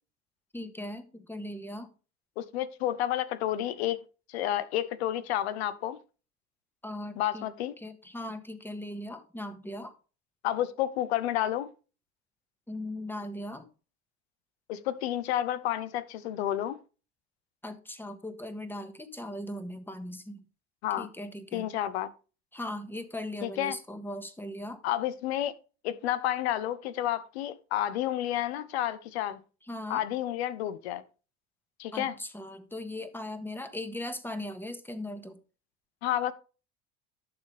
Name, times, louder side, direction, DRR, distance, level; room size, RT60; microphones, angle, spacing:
voice 1, 0.5-1.9 6.8-7.5 7.8-9.9 12.7-13.7 17.6-20.4 21.0-21.7 22.5-24.8 29.7-30.0 31.9-35.4, left 1 dB, 5° left, 1.6 m, -39 dB
voice 2, 2.4-4.0 4.3-6.0 7.2-7.7 10.4-11.7 14.7-16.8 20.8-21.1 21.5-22.1 23.4-23.8 24.8-25.5 25.8-29.4 29.9-31.0 31.8-32.1 36.0-36.3, left 12 dB, 85° left, 1.0 m, -30 dB
11.5 x 6.9 x 3.4 m
hypercardioid pair, 85°, 31 cm